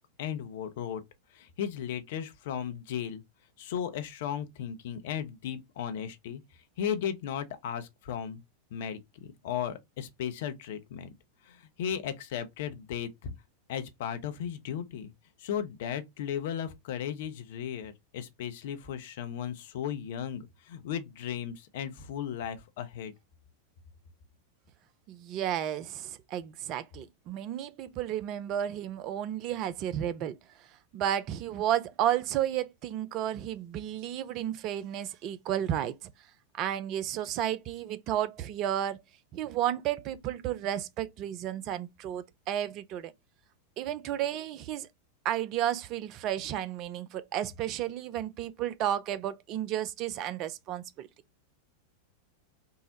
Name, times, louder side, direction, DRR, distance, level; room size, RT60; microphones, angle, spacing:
voice 1, 0.2-1.0 1.3-3.2 3.6-6.4 6.8-8.4 8.7-11.1 11.5-13.3 13.7-15.1 15.4-23.1, left 9 dB, 55° left, 0.6 m, -36 dB
voice 2, 25.1-30.4 30.9-36.1 36.6-39.0 39.3-43.1 43.8-44.9 45.2-51.1, right 11 dB, 40° right, 0.4 m, -32 dB
3.6 x 2.0 x 2.7 m
figure-of-eight pair, 90°, 0 cm